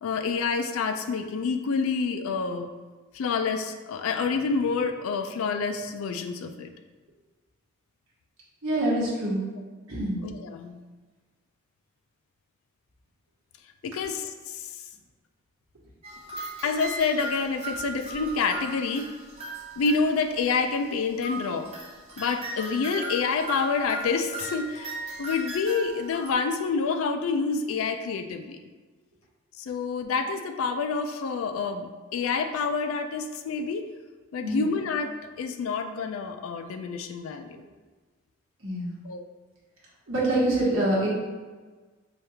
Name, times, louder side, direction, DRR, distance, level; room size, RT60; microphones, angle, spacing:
voice 1, 0.0-2.7 3.1-6.7 10.2-10.8 13.8-14.7 16.6-19.1 19.8-21.7 22.2-24.9 25.2-28.6 29.6-33.9 34.3-37.6 39.0-39.2, left 5 dB, 90° left, 7 dB, 0.3 m, -28 dB
voice 2, 8.6-9.4 9.9-10.2 34.4-34.6 38.6-38.9 40.1-41.1, right 1 dB, 80° right, -6 dB, 1.2 m, -25 dB
sound 1, 16.0-20.7 21.2-26.3, right 1 dB, 30° right, 0.6 m, -37 dB
5.1 x 2.4 x 2.7 m, 1.4 s
head